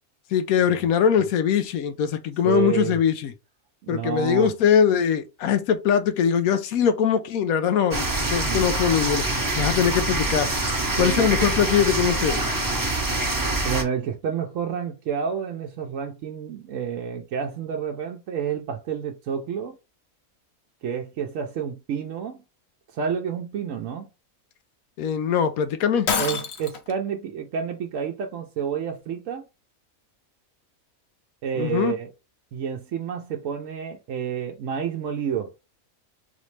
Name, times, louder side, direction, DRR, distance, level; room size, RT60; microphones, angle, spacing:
voice 1, 0.3-3.3 3.9-10.5 11.0-12.4 25.0-26.1 31.6-31.9, left 8 dB, 85° left, 1.1 m, -22 dB
voice 2, 2.4-3.0 3.8-4.5 8.4-8.6 10.9-11.5 13.6-19.8 20.8-22.4 22.9-24.1 26.1-29.4 31.4-32.1 32.5-35.5, right 7 dB, 70° right, 1.0 m, -29 dB
sound 1, 7.9-13.8, right 2 dB, 20° right, 0.6 m, -25 dB
Shatter, 26.1-26.9, left 6 dB, 55° left, 0.9 m, -26 dB
4.0 x 3.1 x 3.2 m
omnidirectional pair, 1.5 m